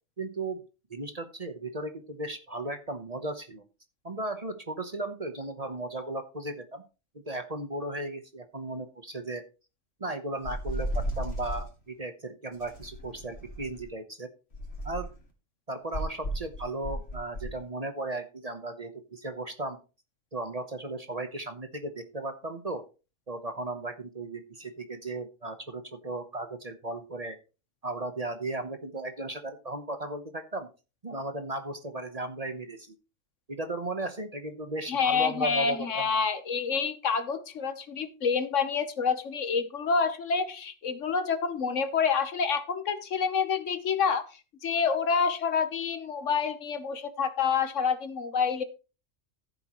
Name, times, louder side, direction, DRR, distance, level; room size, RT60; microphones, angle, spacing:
voice 1, 0.2-0.6 0.9-3.6 4.0-6.8 7.1-9.4 10.0-14.3 14.8-15.1 15.7-19.8 20.3-22.8 23.3-27.4 27.8-30.7 31.0-33.0 33.5-36.1, right 2 dB, 30° right, 8 dB, 1.1 m, -36 dB
sound 1, 10.4-11.7 12.6-13.9 14.5-15.2 15.9-17.6, equal, 55° left, 2.5 m, -34 dB
voice 2, 34.9-44.2 44.6-48.6, left 5 dB, 70° left, 10 dB, 1.4 m, -28 dB
14.5 x 8.0 x 3.1 m, 0.32 s
omnidirectional pair, 1.3 m